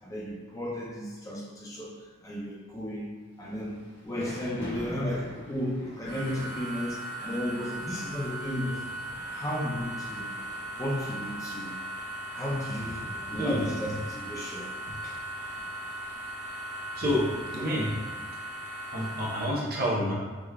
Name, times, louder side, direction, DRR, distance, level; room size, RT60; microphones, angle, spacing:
voice 1, 0.0-1.9 2.2-3.1 3.4-8.8 9.3-10.3 10.8-11.8 12.3-13.0 13.3-14.7 15.0-15.2, left 1 dB, 15° left, -4 dB, 0.4 m, -34 dB
Thunder / Rain, 3.4-16.5, left 1 dB, 60° left, 1.3 m, -48 dB
sound 1, 6.0-19.4, right 1 dB, 15° right, 0.8 m, -38 dB
voice 2, 13.0-13.6 17.0-18.0 18.9-20.1, equal, 45° right, -4 dB, 0.7 m, -29 dB
4.8 x 2.2 x 2.3 m, 1.4 s
head